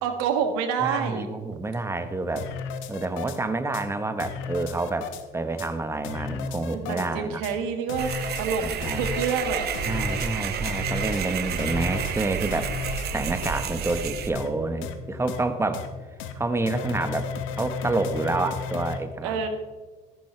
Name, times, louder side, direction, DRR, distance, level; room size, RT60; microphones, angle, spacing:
voice 1, 0.0-1.3 6.7-9.7 19.2-19.5, right 6 dB, 85° right, 6 dB, 1.7 m, -27 dB
voice 2, 0.8-2.5 2.9-7.4 8.6-9.0 9.9-12.7 13.1-15.9 16.3-17.3 17.6-19.5, right 2 dB, 15° right, 9 dB, 1.1 m, -28 dB
sound 1, 2.4-3.4 3.7-3.8 4.2-5.2 5.6-5.7 6.0-7.1 7.4-7.5 7.9-8.5 8.8-9.4 9.7-10.3 10.7-11.2 11.6-12.1 12.5-13.1 13.4-13.6 13.9-14.0 14.4-14.5 14.8-14.9 15.3-15.4 15.7-15.9 16.2-16.3 16.7-19.0, left 6 dB, 75° left, 1.1 m, -34 dB
sound 2, 8.0-14.3, right 7 dB, 50° right, 1.1 m, -30 dB
14.0 x 10.5 x 3.3 m, 1.3 s
supercardioid pair, 100°, 20 cm